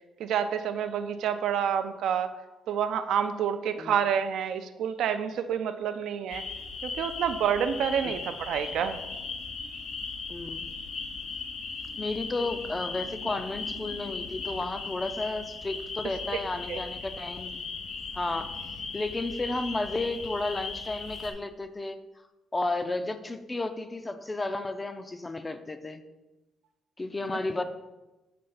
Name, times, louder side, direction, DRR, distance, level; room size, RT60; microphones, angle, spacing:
voice 1, 0.2-2.3 2.7-6.4 6.8-9.0 16.7-16.8, right 8 dB, 75° right, 9 dB, 0.5 m, -28 dB
sound 1, 6.3-21.3, left 4 dB, 55° left, 1.0 m, -38 dB
voice 2, 10.3-10.7 12.0-17.6 18.1-18.6 18.9-22.0 22.5-26.0 27.0-27.6, left 2 dB, 15° left, 10 dB, 0.4 m, -32 dB
6.7 x 3.3 x 5.5 m, 1.0 s
cardioid pair, 135°, 0 cm